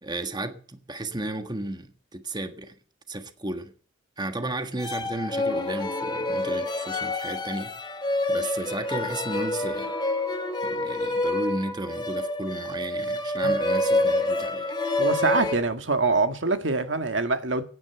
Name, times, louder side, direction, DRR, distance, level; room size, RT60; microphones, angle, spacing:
voice 1, 0.0-2.7 3.1-3.7 4.2-7.7 8.3-9.9 10.6-14.7, right 2 dB, 25° right, 1.5 m, -33 dB
sound 1, 4.8-15.5, left 2 dB, 25° left, 2.0 m, -27 dB
voice 2, 15.0-17.6, right 3 dB, 75° right, 1.9 m, -24 dB
17.0 x 9.9 x 6.9 m
head